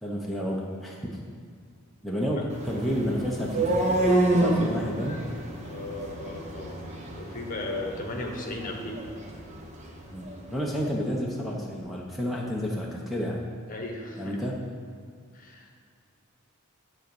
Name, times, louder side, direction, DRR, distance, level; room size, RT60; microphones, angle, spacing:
voice 1, 0.0-1.2 2.0-3.9 4.3-5.2 10.1-13.4 14.2-14.6, equal, ahead, -3 dB, 0.8 m, -30 dB
sound 1, 2.5-10.5, right 1 dB, 35° right, 1.0 m, -29 dB
voice 2, 5.6-6.8 7.1-9.0 13.7-14.4 15.3-15.7, left 2 dB, 40° left, 1 dB, 1.2 m, -36 dB
10.5 x 3.9 x 6.9 m, 2.1 s
head